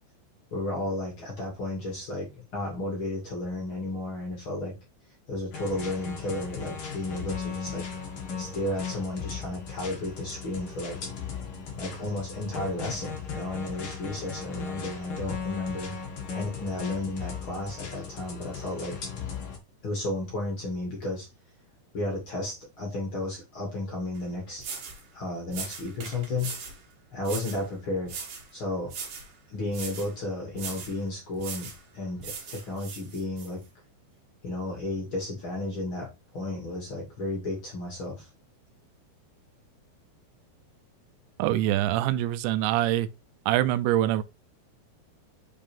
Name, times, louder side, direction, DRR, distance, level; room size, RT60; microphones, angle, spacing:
voice 1, 0.5-4.7 5.3-7.8 8.4-11.0 11.8-15.9 16.3-19.0 19.8-21.3 21.9-24.7 25.1-26.5 27.1-28.2 28.5-28.9 29.5-31.7 31.9-33.6 34.4-38.3, left 2 dB, 40° left, 2.2 m, -33 dB
sound 1, 5.5-19.6, left 6 dB, 60° left, 1.4 m, -37 dB
sound 2, 24.2-24.3 24.6-25.0 25.5-26.8 27.2-27.6 28.1-28.5 28.9-29.3 29.7-30.1 30.5-31.0 31.4-31.8 32.2-33.5, right 5 dB, 55° right, 3.0 m, -39 dB
voice 2, 41.4-43.1 43.5-44.2, right 13 dB, 85° right, 2.9 m, -24 dB
6.6 x 5.5 x 3.4 m
omnidirectional pair, 5.0 m